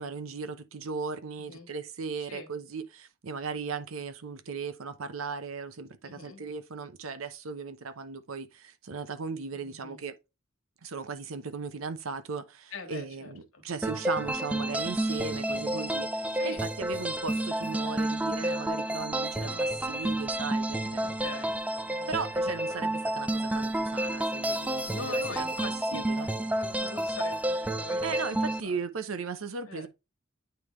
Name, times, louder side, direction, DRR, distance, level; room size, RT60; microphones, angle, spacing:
voice 1, 0.0-10.2 10.8-21.1 22.1-26.3 28.0-29.9, right 5 dB, 90° right, 0.8 m, -37 dB
voice 2, 1.4-1.7 2.2-2.5 6.0-6.5 9.5-10.0 12.7-13.6 15.5-15.9 16.3-16.6 19.3-19.8 21.0-21.6 21.8-22.1 24.8-26.3 26.6-28.0 28.5-28.8 29.7-29.9, left 3 dB, 85° left, 1.6 m, -43 dB
sound 1, 13.8-28.6, right 1 dB, 5° right, 0.4 m, -30 dB
9.2 x 3.5 x 3.1 m
head